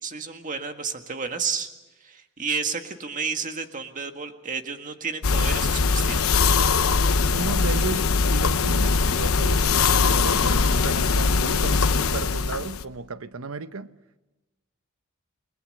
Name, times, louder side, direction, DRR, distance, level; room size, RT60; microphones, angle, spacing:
voice 1, 0.0-1.7 2.0-6.3, right 5 dB, 40° right, 1.8 m, -31 dB
sound 1, 5.2-12.8, left 4 dB, 85° left, 0.9 m, -21 dB
voice 2, 7.0-9.7 10.1-13.9, right 3 dB, 80° right, 0.9 m, -34 dB
29.5 x 21.0 x 6.6 m
head